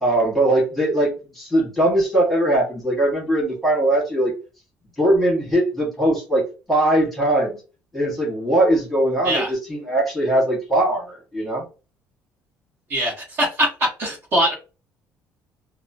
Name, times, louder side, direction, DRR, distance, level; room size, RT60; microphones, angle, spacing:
voice 1, 0.0-4.3 5.0-7.6 7.9-11.7, right 1 dB, ahead, -4 dB, 1.4 m, -20 dB
voice 2, 12.9-13.7 14.0-14.5, equal, 45° right, -3 dB, 1.2 m, -22 dB
2.9 x 2.1 x 2.7 m, 0.32 s
cardioid pair, 165°, 6 cm